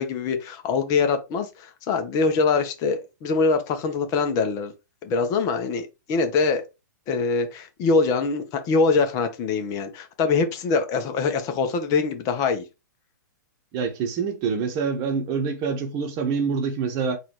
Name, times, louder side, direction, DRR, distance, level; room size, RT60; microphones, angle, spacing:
voice 1, 0.0-4.7 5.0-6.6 7.1-12.6, left 4 dB, 35° left, 0.9 m, -23 dB
voice 2, 13.7-17.2, right 5 dB, 35° right, 1.0 m, -26 dB
4.2 x 2.6 x 4.4 m
hypercardioid pair, 120°, 10 cm